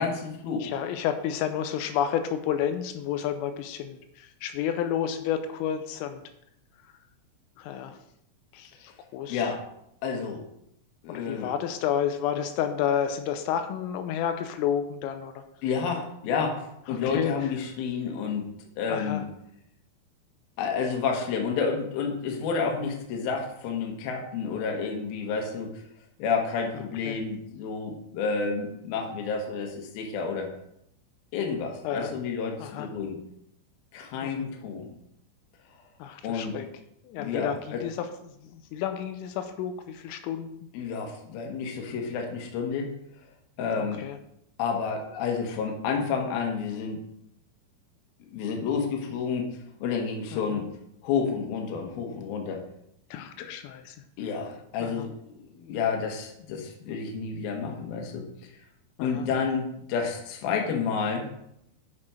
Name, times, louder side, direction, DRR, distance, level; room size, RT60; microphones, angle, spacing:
voice 1, 0.0-0.7 9.3-9.6 10.0-10.4 11.0-11.5 15.6-18.4 18.8-19.2 20.6-25.8 26.2-30.5 31.3-33.2 33.9-34.9 36.2-36.5 37.2-37.8 40.7-42.9 43.6-44.0 44.6-47.0 48.3-49.5 49.8-50.7 51.0-52.6 54.2-58.3 59.0-61.3, left 5 dB, 65° left, 2 dB, 2.6 m, -30 dB
voice 2, 0.6-6.2 7.6-8.0 8.5-9.5 11.1-15.4 16.9-17.5 18.9-19.2 27.1-27.2 31.8-32.1 32.6-32.9 34.2-34.5 36.0-36.7 37.0-40.5 43.8-44.2 50.3-50.6 53.1-54.0 54.8-55.1 59.0-59.3, left 9 dB, 85° left, 7 dB, 3.3 m, -31 dB
8.6 x 6.0 x 4.9 m, 0.77 s
omnidirectional pair, 5.8 m